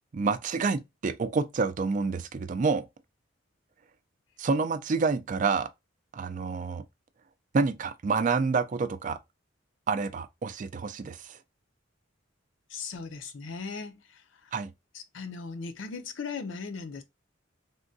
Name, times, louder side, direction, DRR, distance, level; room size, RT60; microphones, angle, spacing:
voice 1, 0.1-2.8 4.4-5.7 6.1-6.8 7.5-9.2 9.9-11.4 14.5-14.7, right 4 dB, 40° right, 0.3 m, -28 dB
voice 2, 12.7-14.5 14.9-17.0, left 5 dB, 75° left, 0.5 m, -38 dB
3.6 x 2.2 x 2.5 m
head